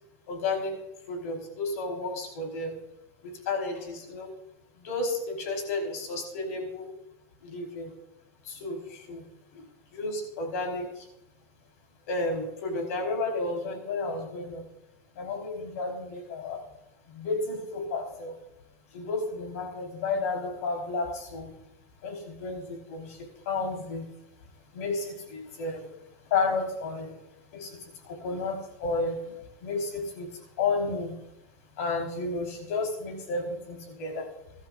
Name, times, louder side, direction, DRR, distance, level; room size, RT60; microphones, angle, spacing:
voice 1, 0.3-0.8 1.1-2.7 3.2-4.3 4.8-6.9 7.4-7.9 8.4-9.3 9.5-9.6 9.9-11.1 12.1-14.6 15.1-16.6 17.1-18.4 18.9-21.5 22.0-24.0 24.7-25.9 26.3-27.1 27.5-30.3 30.6-31.1 31.8-34.3, left 3 dB, 85° left, 3 dB, 4.8 m, -32 dB
22.5 x 12.5 x 2.7 m, 0.84 s
supercardioid pair, 140°, 8 cm